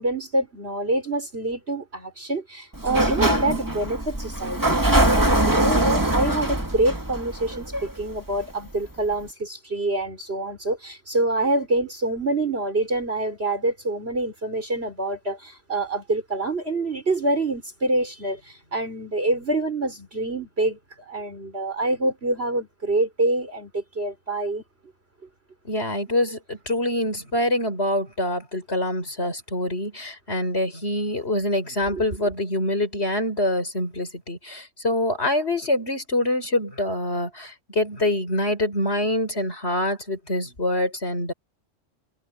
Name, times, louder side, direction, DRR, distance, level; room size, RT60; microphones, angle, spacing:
voice 1, 0.0-24.6 31.9-32.0, right 2 dB, 50° right, 5.2 m, -26 dB
Sliding door, 2.7-8.4, right 1 dB, 15° right, 1.7 m, -22 dB
voice 2, 25.6-41.3, left 1 dB, 50° left, 6.1 m, -25 dB
omnidirectional pair, 1.4 m